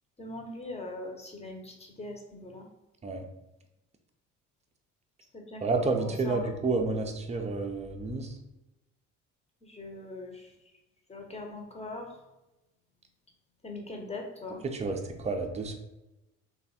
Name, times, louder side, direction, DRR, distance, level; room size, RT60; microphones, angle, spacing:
voice 1, 0.2-2.7 5.3-6.5 9.6-10.5 11.1-12.1 13.6-14.6, left 2 dB, 15° left, 1 dB, 1.0 m, -41 dB
voice 2, 5.6-8.3 14.6-15.8, right 3 dB, 20° right, 4 dB, 0.6 m, -30 dB
3.2 x 2.4 x 4.0 m, 0.96 s
figure-of-eight pair, 50°, 38 cm